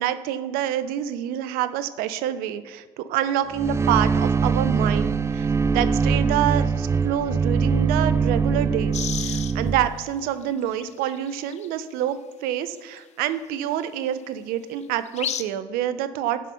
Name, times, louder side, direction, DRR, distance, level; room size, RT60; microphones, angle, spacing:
voice 1, 0.0-9.0 9.2-16.4, right 11 dB, 70° right, 12 dB, 0.5 m, -27 dB
sound 1, 3.5-9.9, right 5 dB, 15° right, 0.3 m, -22 dB
sound 2, 8.9-9.5 10.5-10.6 10.8-11.7 13.0-13.1 14.9-15.4, left 9 dB, 45° left, 0.5 m, -31 dB
6.3 x 4.2 x 6.4 m, 1.4 s
hypercardioid pair, 55°, 16 cm